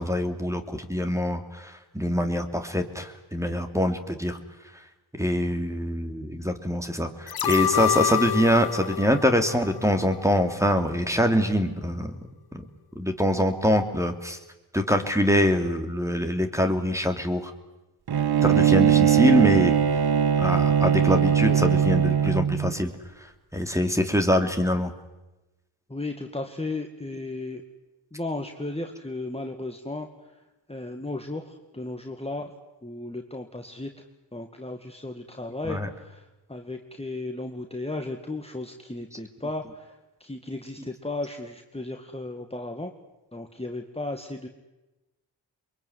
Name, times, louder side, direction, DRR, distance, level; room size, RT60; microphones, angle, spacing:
voice 1, 0.0-4.4 4.6-4.9 5.1-12.2 12.5-12.7 12.9-14.4 14.7-17.5 18.4-20.0 20.4-22.9 23.2-24.9 35.7-35.9, equal, 5° right, 6 dB, 3.0 m, -24 dB
sound 1, 7.3-10.4 10.8-10.9, left 9 dB, 55° left, 0.9 m, -28 dB
Bowed string instrument, 18.1-22.7, right 9 dB, 55° right, 1.2 m, -20 dB
voice 2, 25.9-27.6 28.1-30.4 30.7-32.5 32.8-34.0 34.3-42.9 43.3-44.5, left 2 dB, 15° left, 4 dB, 2.1 m, -35 dB
23.0 x 22.5 x 9.7 m, 1.0 s
cardioid pair, 40°, 44 cm